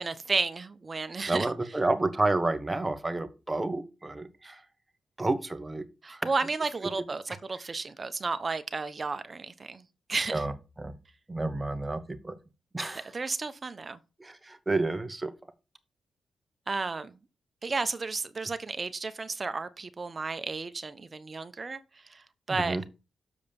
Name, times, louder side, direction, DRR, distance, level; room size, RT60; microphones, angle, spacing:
voice 1, 0.0-1.5 6.0-9.8 10.1-10.4 13.1-14.0 16.7-17.1 17.6-22.9, right 4 dB, 40° right, 1.0 m, -33 dB
voice 2, 1.3-4.6 5.2-6.3 10.3-10.5 10.8-10.9 11.3-12.3 12.7-13.1 14.2-15.3 22.6-22.8, right 2 dB, 20° right, 1.2 m, -30 dB
7.1 x 4.9 x 5.3 m
cardioid pair, 60°, 0 cm